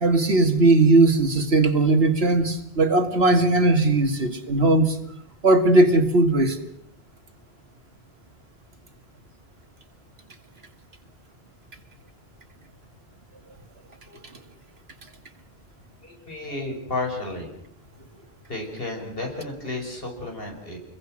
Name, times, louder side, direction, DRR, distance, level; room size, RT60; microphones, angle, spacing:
voice 1, 0.0-4.9 5.4-6.6, right 2 dB, 75° right, 2.3 m, -18 dB
voice 2, 16.0-17.6 18.5-20.8, left 2 dB, 65° left, 6.0 m, -32 dB
28.0 x 22.0 x 6.4 m
omnidirectional pair, 1.0 m